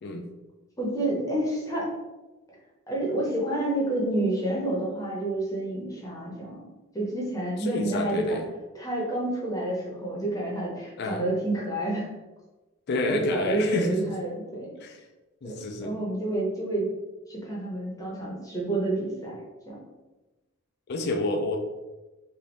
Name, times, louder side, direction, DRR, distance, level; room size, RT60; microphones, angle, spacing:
voice 1, 0.8-1.9 2.9-6.6 6.9-8.4 8.7-12.1 13.1-14.7 15.4-16.9 17.3-19.4 19.7-19.8, right 1 dB, 15° left, -4 dB, 0.8 m, -29 dB
voice 2, 7.6-8.5 11.0-11.2 12.9-14.0 14.8-15.0 15.4-16.0 20.9-21.6, left 2 dB, 50° left, 3 dB, 0.4 m, -29 dB
3.4 x 2.6 x 3.8 m, 1.1 s
head